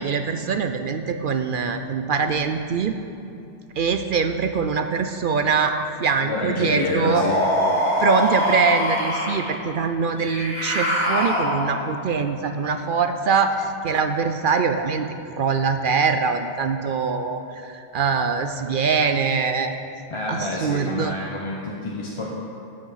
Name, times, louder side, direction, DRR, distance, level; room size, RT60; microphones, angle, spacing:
voice 1, 0.0-2.9 3.8-7.2 8.0-15.1 15.4-19.8 20.3-21.1, right 5 dB, 60° right, 7 dB, 0.6 m, -23 dB
voice 2, 6.2-7.4 20.1-22.3, left 2 dB, 30° left, -3 dB, 0.8 m, -28 dB
sound 1, 7.1-9.5 10.2-11.9, left 1 dB, 35° right, 2.4 m, -23 dB
12.5 x 6.5 x 5.7 m, 2.7 s
omnidirectional pair, 1.2 m